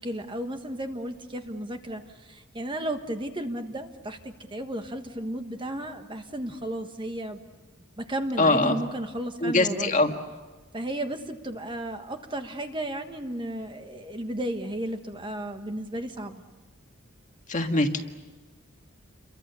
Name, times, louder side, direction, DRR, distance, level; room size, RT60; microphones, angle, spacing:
voice 1, 0.0-7.4 8.0-10.0 10.7-16.4, right 1 dB, 25° right, 6 dB, 1.4 m, -34 dB
voice 2, 8.4-8.8 9.4-10.1 17.5-18.1, left 2 dB, 35° left, 5 dB, 1.7 m, -22 dB
29.0 x 23.5 x 7.0 m, 1.2 s
head